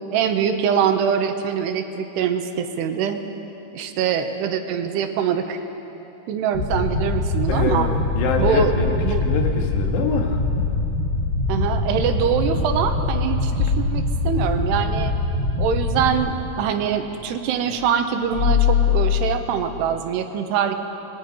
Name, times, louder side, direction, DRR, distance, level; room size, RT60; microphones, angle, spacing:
voice 1, 0.1-3.2 3.7-5.6 6.3-7.9 8.4-8.7 9.0-9.3 11.5-15.1 15.6-20.8, right 8 dB, 85° right, 7 dB, 3.1 m, -23 dB
sound 1, 6.5-7.5 8.3-12.3 12.7-12.8 13.1-20.0, left 8 dB, 50° left, 1.5 m, -27 dB
sound 2, 6.5-16.1, left 2 dB, 25° left, 1.7 m, -23 dB
voice 2, 7.5-9.0 9.2-10.4, left 4 dB, 85° left, 2 dB, 3.9 m, -25 dB
26.5 x 21.0 x 5.3 m, 2.9 s
omnidirectional pair, 4.8 m